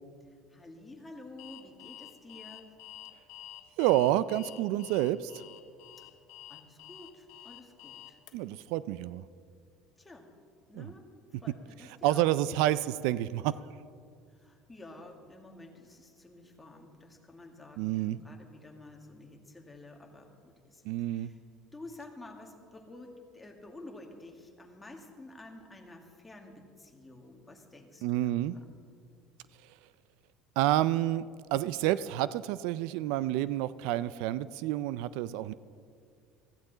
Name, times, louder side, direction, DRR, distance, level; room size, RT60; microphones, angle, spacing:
voice 1, 0.2-2.7 6.0-6.1 6.5-8.2 10.0-10.3 10.7-11.1 11.4-12.9 14.3-21.4 21.7-28.3, left 2 dB, 10° left, 2 dB, 1.7 m, -50 dB
Alarm, 1.4-8.3, left 13 dB, 75° left, 1.3 m, -49 dB
voice 2, 3.8-5.3 8.3-9.2 10.7-10.9 12.0-13.5 17.8-18.2 20.8-21.3 28.0-28.6 30.6-35.5, right 14 dB, 80° right, 16 dB, 0.4 m, -29 dB
16.0 x 15.0 x 3.9 m, 2.2 s
cardioid pair, 140°, 0 cm